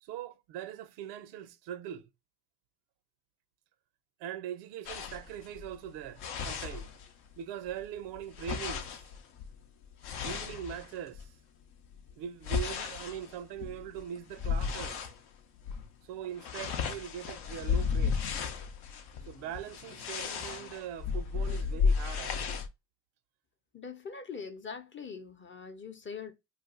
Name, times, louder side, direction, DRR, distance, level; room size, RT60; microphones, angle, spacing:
voice 1, 0.0-2.1 4.2-6.9 7.4-9.0 10.2-11.3 12.2-15.1 16.0-18.3 19.3-22.6, right 10 dB, 80° right, 0.5 m, -41 dB
sound 1, 4.9-7.4 7.7-11.3 11.8-15.2 15.6-15.9 16.1-22.7, left 6 dB, 70° left, 0.7 m, -34 dB
voice 2, 23.7-26.3, left 5 dB, 30° left, 0.6 m, -42 dB
2.5 x 2.3 x 3.7 m
supercardioid pair, 75°, 41 cm